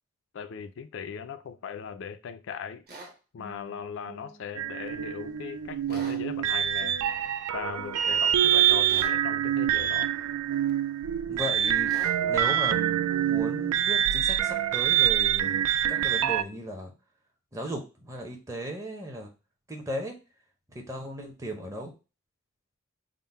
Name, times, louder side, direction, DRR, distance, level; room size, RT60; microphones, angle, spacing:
voice 1, 0.3-2.8 3.3-7.0 7.5-10.1, left 7 dB, 60° left, 0.3 m, -38 dB
sound 1, 2.9-3.1 5.9-6.2 8.8-9.2 11.9-12.2, right 2 dB, 40° right, 1.0 m, -43 dB
sound 2, 3.4-5.5 5.9-8.3 8.7-12.8 13.1-15.1, right 3 dB, 65° right, 1.0 m, -48 dB
sound 3, 4.6-16.4, right 11 dB, 90° right, 0.3 m, -25 dB
voice 2, 11.2-11.9 12.2-16.9 17.5-19.3 19.7-20.2 20.7-21.9, right 1 dB, 15° right, 0.6 m, -36 dB
3.7 x 2.0 x 4.1 m
head